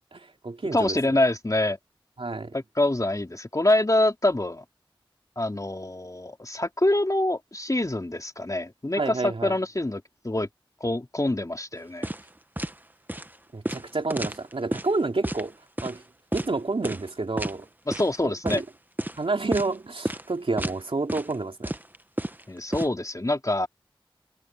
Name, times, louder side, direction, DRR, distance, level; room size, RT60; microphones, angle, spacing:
voice 1, 0.0-1.0 2.2-2.5 8.9-9.6 13.5-15.5 15.8-16.0 16.3-17.7 18.2-18.6 19.2-21.8, right 3 dB, 85° right, 2.9 m, -29 dB
voice 2, 0.7-1.8 2.5-4.6 5.4-10.5 10.8-12.1 17.9-18.6 22.5-23.7, left 1 dB, 40° left, 3.3 m, -25 dB
sound 1, 12.0-12.3 12.6-12.7 13.1-13.3 13.7-14.9 15.2-15.4 15.8-16.0 16.3-16.5 16.8-17.1 17.4-17.5 17.9-18.2 18.5-18.6 19.0-19.2 19.5-19.8 20.0-20.2 20.6-20.8 21.1-21.3 21.6-22.9, right 1 dB, 20° right, 1.0 m, -30 dB
wide cardioid pair, 50°, 9 cm